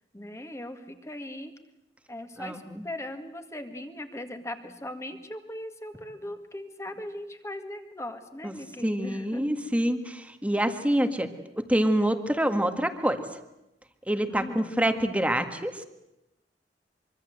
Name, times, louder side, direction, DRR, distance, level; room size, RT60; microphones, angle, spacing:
voice 1, 0.1-1.5 2.1-9.5 14.3-14.7, left 1 dB, 15° left, 7 dB, 2.1 m, -39 dB
voice 2, 2.4-2.8 8.4-8.5 8.8-13.2 14.1-15.8, right 1 dB, 10° right, 7 dB, 1.8 m, -26 dB
24.5 x 24.5 x 7.9 m, 0.92 s
head